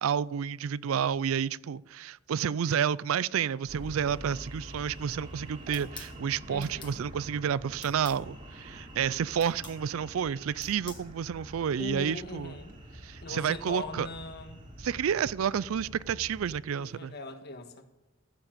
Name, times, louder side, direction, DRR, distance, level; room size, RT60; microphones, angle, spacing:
voice 1, 0.0-12.6 13.0-14.1 14.8-17.1, right 8 dB, 75° right, 0.4 m, -30 dB
sound 1, 3.7-16.6, right 1 dB, 40° right, 3.1 m, -46 dB
sound 2, 5.7-6.1 6.6-7.0 7.8-8.2 9.4-9.8 10.6-11.1, left 6 dB, 25° left, 1.6 m, -46 dB
voice 2, 6.5-7.0 11.8-12.8 13.2-14.6 16.8-17.9, left 2 dB, 50° left, 1.5 m, -40 dB
15.0 x 7.2 x 9.1 m
head